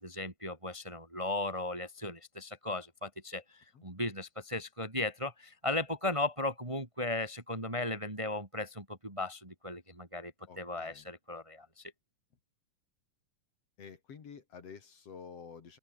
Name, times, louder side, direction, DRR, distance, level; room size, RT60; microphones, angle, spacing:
voice 1, 0.0-11.8, left 2 dB, 10° right, 2.3 m, -36 dB
voice 2, 10.5-11.1 13.8-15.8, left 6 dB, 50° left, 3.2 m, -50 dB
open air
omnidirectional pair, 3.6 m